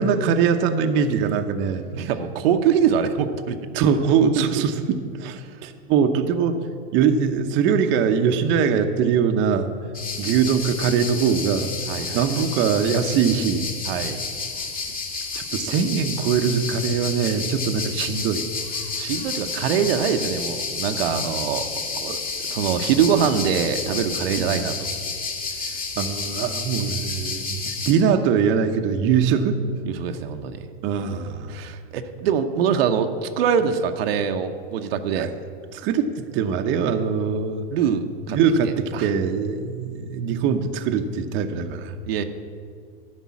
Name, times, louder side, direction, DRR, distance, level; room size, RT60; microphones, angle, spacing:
voice 1, 0.0-1.8 3.7-6.6 6.9-9.7 10.2-11.7 12.1-13.7 15.3-18.4 24.4-24.5 26.0-29.6 30.8-31.5 35.2-35.3 35.7-37.7 38.3-41.9, right 6 dB, 35° right, 6 dB, 0.8 m, -22 dB
voice 2, 2.0-3.6 5.4-5.5 11.9-12.2 13.9-14.2 19.0-22.2 22.5-24.9 29.8-30.7 31.5-35.3 37.7-38.4 38.6-39.1 42.0-42.2, right 7 dB, 65° right, 6 dB, 0.8 m, -24 dB
sound 1, 9.9-27.9, left 4 dB, 25° left, 1.7 m, -30 dB
11.5 x 5.4 x 8.4 m, 2.2 s
hypercardioid pair, 115°, 32 cm